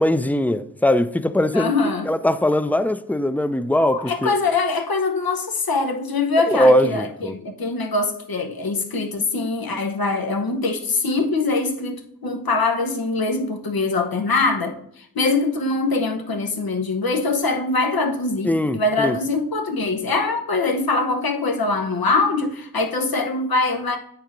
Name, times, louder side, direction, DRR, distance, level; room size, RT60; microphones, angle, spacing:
voice 1, 0.0-1.7 2.1-4.3 6.5-7.4 18.4-19.2, left 1 dB, 5° left, 0.4 m, -20 dB
voice 2, 1.5-2.1 3.9-24.0, left 3 dB, 85° left, 1.0 m, -23 dB
7.2 x 4.6 x 5.2 m
cardioid pair, 45°, 35 cm